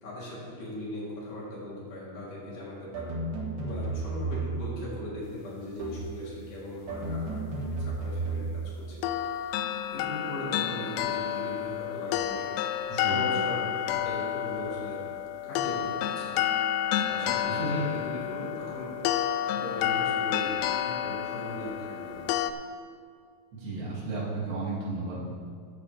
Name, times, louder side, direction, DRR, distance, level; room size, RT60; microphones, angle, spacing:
voice 1, 0.0-3.1 3.6-9.2 9.9-15.0 15.4-16.4 17.1-22.5, left 1 dB, 50° left, -7 dB, 4.7 m, -39 dB
sound 1, 2.9-4.7 5.8-6.2 6.9-8.7, right 3 dB, 55° right, 2.6 m, -33 dB
sound 2, 9.0-22.5, left 11 dB, 85° left, 2.5 m, -30 dB
voice 2, 12.9-13.2 17.4-17.9 23.5-25.3, right 2 dB, 70° right, -7 dB, 4.9 m, -33 dB
15.5 x 9.7 x 3.5 m, 2.1 s
omnidirectional pair, 5.1 m